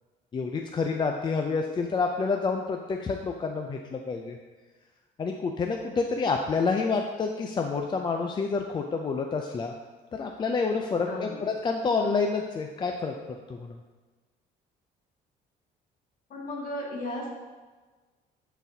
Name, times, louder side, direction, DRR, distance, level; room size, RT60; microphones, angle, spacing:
voice 1, 0.3-4.4 5.2-9.7 10.1-13.1 13.5-13.8, left 4 dB, 25° left, 3 dB, 0.4 m, -28 dB
voice 2, 11.1-11.4 16.3-17.3, left 1 dB, 55° left, -2 dB, 1.8 m, -35 dB
11.5 x 4.0 x 2.8 m, 1.3 s
cardioid pair, 110°, 17 cm